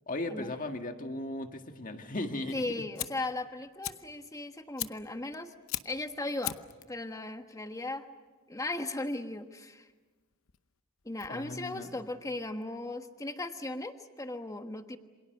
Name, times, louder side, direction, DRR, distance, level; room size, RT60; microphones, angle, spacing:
voice 1, 0.1-2.6 11.3-11.9, left 2 dB, 40° left, 5 dB, 1.8 m, -37 dB
Fire, 2.5-13.0, left 13 dB, 70° left, 0.8 m, -43 dB
voice 2, 2.5-5.5 5.8-6.6 6.9-8.1 8.5-9.9 11.0-15.0, left 2 dB, 15° left, 7 dB, 1.3 m, -37 dB
28.0 x 26.5 x 6.6 m, 1.3 s
head